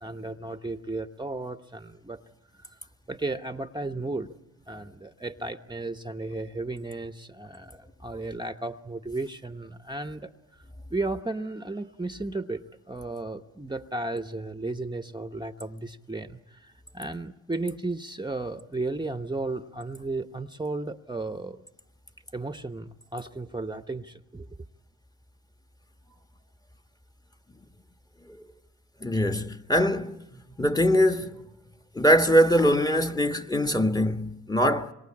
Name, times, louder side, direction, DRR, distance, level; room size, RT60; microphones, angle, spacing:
voice 1, 0.0-2.2 2.5-2.8 3.1-4.3 4.7-10.6 10.9-21.6 22.3-24.5, right 2 dB, 15° right, 1.0 m, -34 dB
voice 2, 29.0-30.2 30.6-31.3 31.9-34.9, equal, 10° left, 1.3 m, -22 dB
26.0 x 23.0 x 8.7 m
supercardioid pair, 60°, 34 cm